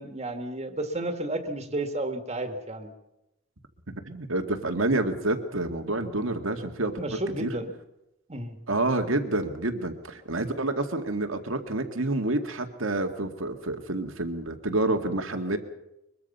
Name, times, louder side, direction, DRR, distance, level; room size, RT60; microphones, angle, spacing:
voice 1, 0.0-2.9 7.0-7.7 8.3-8.6, right 1 dB, 35° right, 6 dB, 2.0 m, -32 dB
voice 2, 3.9-6.9 7.4-7.5 8.7-15.6, right 2 dB, 90° right, 6 dB, 2.2 m, -28 dB
23.0 x 22.5 x 5.6 m, 0.89 s
head